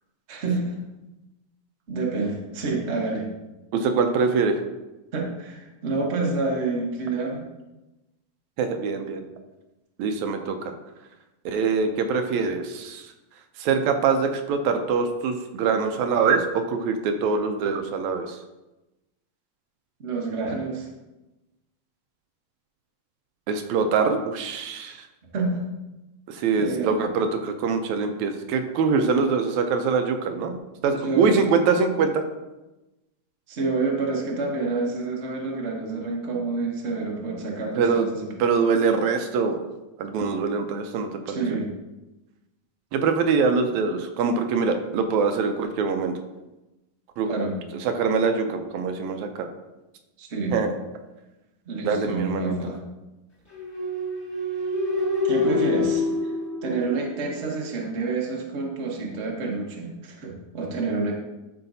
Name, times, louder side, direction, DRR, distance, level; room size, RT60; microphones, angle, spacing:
voice 1, 0.3-0.8 1.9-3.3 5.1-7.4 20.0-20.9 25.3-25.6 26.6-27.0 31.0-31.4 33.5-38.3 41.3-41.7 47.3-47.6 50.2-50.6 51.7-52.8 55.2-56.3 56.6-61.1, right 3 dB, 45° right, -1 dB, 0.8 m, -28 dB
voice 2, 3.7-4.6 8.6-9.2 10.0-10.7 11.5-13.1 13.6-18.4 23.5-25.1 26.3-30.6 30.8-32.2 37.8-38.1 38.4-39.6 40.0-41.6 42.9-46.1 47.2-47.3 47.9-49.5 50.5-50.8 51.8-52.5, right 5 dB, 80° right, 6 dB, 1.9 m, -24 dB
sound 1, 53.5-57.3, left 3 dB, 25° left, 2.0 m, -26 dB
12.0 x 4.9 x 2.7 m, 1.0 s
omnidirectional pair, 3.3 m